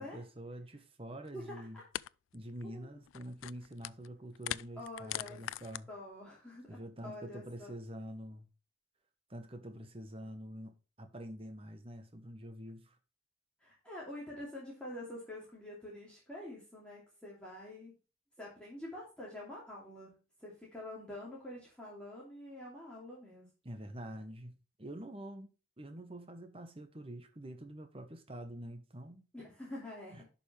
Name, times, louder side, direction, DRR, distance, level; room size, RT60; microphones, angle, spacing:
voice 1, 0.0-1.8 2.3-5.9 6.7-8.5 9.3-12.9 23.6-25.5 25.8-29.2, right 1 dB, 30° right, 1.2 m, -46 dB
sound 1, 1.3-1.4 1.9-2.1 2.3-2.6 3.0-4.1 4.3-5.8, left 13 dB, 80° left, 0.3 m, -41 dB
voice 2, 1.3-1.8 2.6-3.0 4.8-5.4 5.9-7.8 13.6-17.9 18.4-23.5 29.3-30.3, left 1 dB, 5° left, 2.7 m, -47 dB
11.0 x 5.4 x 3.3 m
head